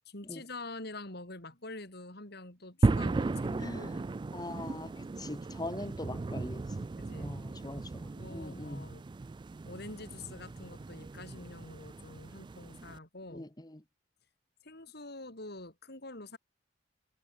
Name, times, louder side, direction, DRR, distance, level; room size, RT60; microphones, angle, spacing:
voice 1, 0.1-4.1 7.0-7.3 8.2-9.0 9.6-13.5 14.6-16.4, left 2 dB, 60° left, 5.4 m, -46 dB
sound 1, 2.8-13.0, right 3 dB, 25° right, 0.3 m, -35 dB
voice 2, 3.6-3.9 4.3-6.9 7.2-8.9 13.3-13.8, left 1 dB, 20° left, 1.5 m, -42 dB
head